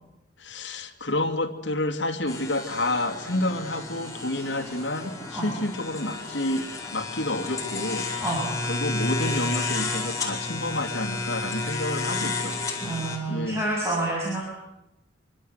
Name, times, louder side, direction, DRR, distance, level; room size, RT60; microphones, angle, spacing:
voice 1, 0.4-8.1 8.6-12.6 13.3-13.6, left 1 dB, 60° left, 6 dB, 2.5 m, -29 dB
sound 1, 2.3-13.2, left 3 dB, 15° left, 5.0 m, -31 dB
voice 2, 12.8-14.4, right 2 dB, 15° right, -4 dB, 7.4 m, -28 dB
26.0 x 25.0 x 8.1 m, 0.91 s
head